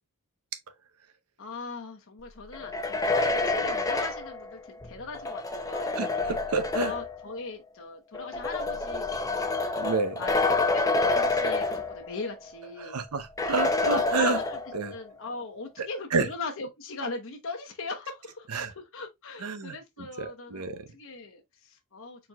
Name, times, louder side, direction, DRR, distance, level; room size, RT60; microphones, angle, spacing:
voice 1, 1.4-5.9 6.7-9.7 10.2-13.0 13.9-22.3, left 3 dB, 60° left, 0.9 m, -39 dB
radiator run, 2.5-7.2 8.1-12.3 12.6-12.7 13.4-14.9, left 3 dB, 15° left, 0.5 m, -28 dB
voice 2, 6.0-6.9 9.8-10.2 12.8-14.4 14.7-14.9 15.8-16.3 18.5-18.7 19.4-20.9, right 4 dB, 85° right, 0.7 m, -30 dB
4.3 x 4.1 x 2.3 m
head